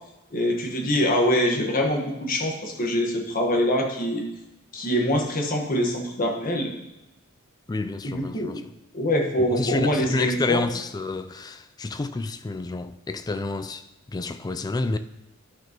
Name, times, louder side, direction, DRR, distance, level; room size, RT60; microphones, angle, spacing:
voice 1, 0.3-4.2 4.7-6.7 8.0-8.6 8.9-10.7, equal, 40° left, 1.3 m, -24 dB
voice 2, 7.7-8.6 9.5-13.8 14.1-15.0, left 3 dB, 20° left, 0.3 m, -29 dB
12.5 x 6.0 x 3.0 m
head